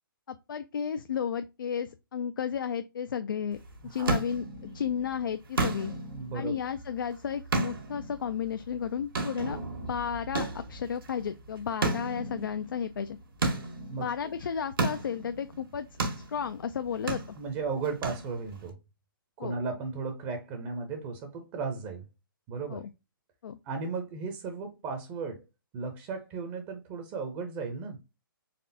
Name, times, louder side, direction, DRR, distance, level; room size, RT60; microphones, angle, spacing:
voice 1, 0.3-3.6 3.8-4.4 4.7-5.9 6.3-13.2 14.0-15.9 16.3-17.4 19.4-19.6 22.7-22.9 23.4-23.6, left 7 dB, 65° left, 0.4 m, -33 dB
sound 1, 3.5-18.7, right 2 dB, 75° right, 1.5 m, -35 dB
voice 2, 3.8-4.2 6.1-6.5 13.9-14.1 17.4-18.8 19.4-22.1 22.5-22.8 23.6-25.4 25.7-28.0, right 4 dB, 25° right, 0.7 m, -35 dB
4.1 x 3.2 x 2.7 m
figure-of-eight pair, 130°, 12 cm